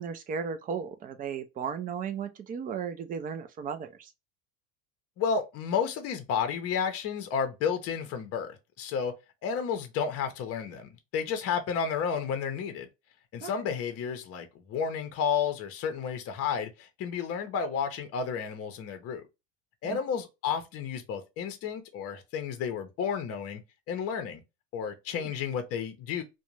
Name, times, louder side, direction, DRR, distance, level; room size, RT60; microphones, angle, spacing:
voice 1, 0.0-4.1 13.4-13.5 19.9-20.0 25.1-25.3, right 6 dB, 25° right, 0.4 m, -35 dB
voice 2, 5.2-9.1 9.4-12.9 13.3-19.2 19.8-23.6 23.9-24.4 24.7-26.2, left 7 dB, 40° left, 0.7 m, -31 dB
2.5 x 2.2 x 2.9 m
supercardioid pair, 130°, 37 cm